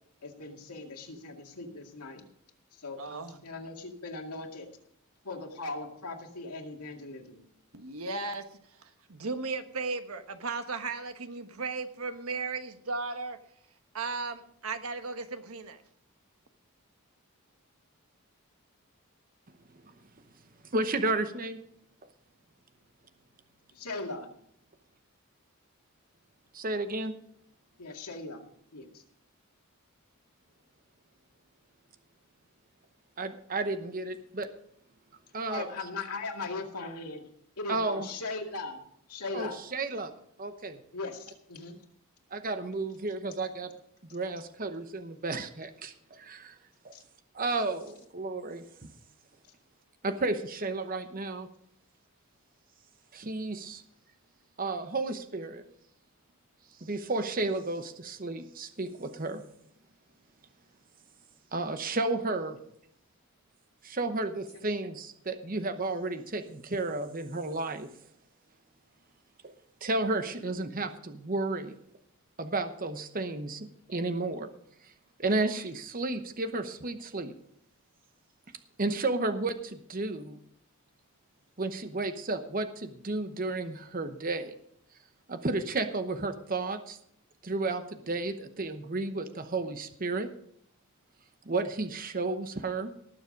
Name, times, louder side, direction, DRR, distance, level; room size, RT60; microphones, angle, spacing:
voice 1, 0.2-2.2 2.7-4.7 5.2-7.4 23.7-24.3 27.8-28.5 28.7-29.0 35.5-37.3 37.6-38.8 39.1-39.6 40.9-41.8 46.9-47.0 64.5-64.7, left 3 dB, 90° left, 2 dB, 2.2 m, -39 dB
voice 2, 3.0-3.4 7.7-8.4 9.1-13.4 13.9-15.8, right 4 dB, 75° right, 8 dB, 1.3 m, -35 dB
voice 3, 20.7-21.6 26.5-27.1 33.2-34.5 35.3-35.7 37.7-38.1 39.3-40.1 40.4-40.8 42.3-43.7 44.1-46.5 46.8-46.9 47.3-48.9 50.0-51.5 53.1-53.8 54.6-55.6 56.8-59.4 61.5-62.6 63.8-67.9 69.4-69.5 69.8-71.8 72.4-74.5 74.8-74.9 75.2-77.3 78.8-80.4 81.6-84.5 85.3-87.0 87.4-90.3 91.5-92.9, right 2 dB, 40° right, 9 dB, 0.9 m, -32 dB
19.0 x 7.1 x 5.3 m, 0.69 s
head